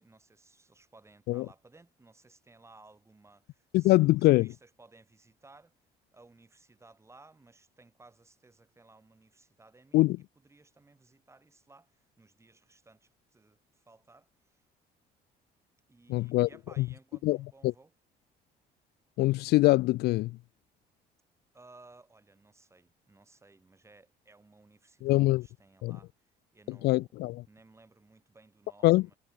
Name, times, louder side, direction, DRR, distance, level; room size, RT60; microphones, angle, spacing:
voice 1, 0.0-5.7 6.1-10.0 10.4-14.6 15.9-17.9 21.5-26.1 26.5-27.2 27.5-29.2, right 3 dB, 15° right, 4.7 m, -59 dB
voice 2, 3.7-4.5 9.9-10.2 16.1-16.5 16.8-16.9 17.2-17.4 17.6-17.7 19.2-20.4 25.0-25.4 25.8-26.0 26.7-27.4 28.8-29.1, left 19 dB, 75° left, 0.4 m, -23 dB
cardioid pair, 110°, 17 cm